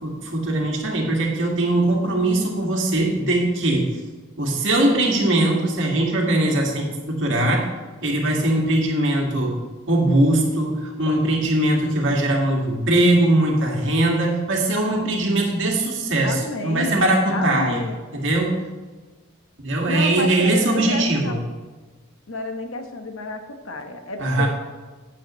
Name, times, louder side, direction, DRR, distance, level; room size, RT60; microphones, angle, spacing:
voice 1, 0.0-4.0 4.4-7.7 8.0-9.6 9.9-17.8 18.1-18.6 19.6-21.4 24.2-24.5, right 1 dB, 60° right, -1 dB, 2.1 m, -21 dB
voice 2, 16.2-17.0 17.3-18.0 19.9-21.4 22.3-24.5, left 2 dB, 80° left, 5 dB, 1.1 m, -30 dB
11.5 x 9.1 x 3.2 m, 1.3 s
head